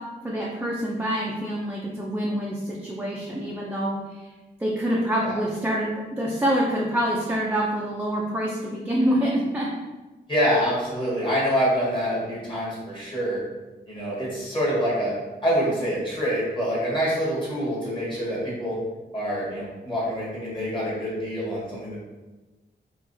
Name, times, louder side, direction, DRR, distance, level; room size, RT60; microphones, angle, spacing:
voice 1, 0.2-4.2 4.6-9.7, equal, 10° right, -4 dB, 0.4 m, -26 dB
voice 2, 10.3-13.4 13.9-15.1 15.4-18.8 19.1-22.0, equal, 25° left, -7 dB, 1.4 m, -26 dB
4.8 x 2.9 x 2.7 m, 1.1 s
wide cardioid pair, 180°, 19 cm